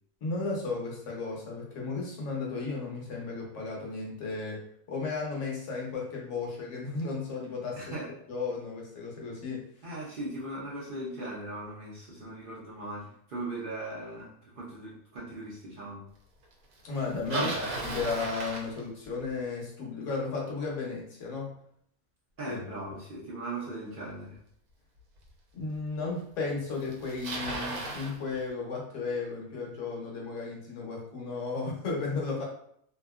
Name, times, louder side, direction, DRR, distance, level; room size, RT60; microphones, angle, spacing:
voice 1, 0.2-4.6 4.9-7.9 8.3-9.6 16.8-17.5 17.8-21.5 22.4-22.6 25.5-32.4, left 4 dB, 65° left, -2 dB, 1.1 m, -34 dB
voice 2, 7.8-8.1 9.8-16.0 17.3-18.1 22.4-24.4, right 2 dB, 55° right, -6 dB, 0.6 m, -38 dB
Bicycle, 16.9-19.3 24.3-24.4 25.3-25.4 26.4-26.5 26.7-28.2, right 2 dB, 90° right, 1.1 m, -36 dB
2.8 x 2.5 x 2.3 m, 0.68 s
omnidirectional pair, 1.5 m